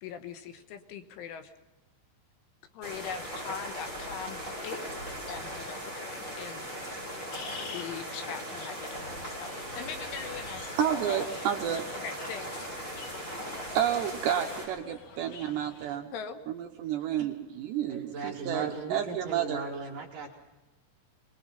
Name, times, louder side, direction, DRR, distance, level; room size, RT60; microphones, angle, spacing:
voice 1, 0.0-1.5 2.7-7.0 7.7-11.3 11.9-12.7 16.1-16.4, left 7 dB, 75° left, 8 dB, 3.5 m, -41 dB
sound 1, 2.8-14.6, equal, 15° left, 7.8 m, -39 dB
sound 2, 7.3-16.0, left 5 dB, 55° left, 2.8 m, -49 dB
voice 2, 10.8-11.9 13.7-16.1 16.5-19.6, right 10 dB, 75° right, 3 dB, 2.7 m, -30 dB
voice 3, 17.9-20.3, right 4 dB, 60° right, -1 dB, 2.5 m, -37 dB
25.5 x 20.5 x 5.6 m, 1.1 s
omnidirectional pair, 5.9 m